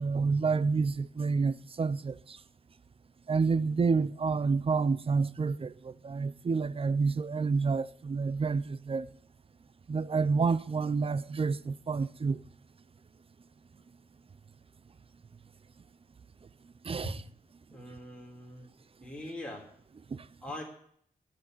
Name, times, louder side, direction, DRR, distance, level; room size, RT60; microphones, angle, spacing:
voice 1, 0.0-2.4 3.3-9.1 9.9-12.4 16.8-17.1 20.1-20.2, right 4 dB, 40° right, 0.6 m, -29 dB
voice 2, 17.7-18.7 19.0-19.6 20.4-20.6, equal, 5° left, 3.6 m, -41 dB
11.0 x 7.9 x 9.5 m
wide cardioid pair, 130°, 15 cm